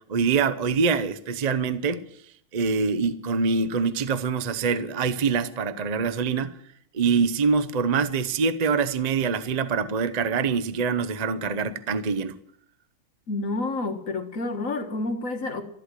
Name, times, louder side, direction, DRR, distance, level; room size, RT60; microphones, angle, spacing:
voice 1, 0.1-2.0 2.5-6.6 6.9-12.3, right 5 dB, 50° right, 0.4 m, -24 dB
voice 2, 13.3-15.6, left 2 dB, 45° left, 1.8 m, -29 dB
14.0 x 11.5 x 7.5 m
omnidirectional pair, 2.1 m